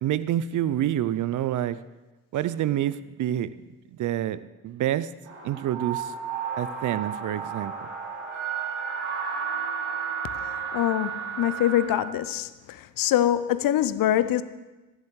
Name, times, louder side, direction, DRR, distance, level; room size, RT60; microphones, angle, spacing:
voice 1, 0.0-1.8 2.3-3.5 4.0-5.1 5.4-6.1 6.6-7.7, right 12 dB, 45° right, 0.6 m, -27 dB
sound 1, 5.3-11.9, right 6 dB, 65° right, 3.4 m, -32 dB
voice 2, 10.7-14.4, left 12 dB, 50° left, 0.7 m, -24 dB
17.0 x 14.5 x 3.2 m
figure-of-eight pair, 45°, 43 cm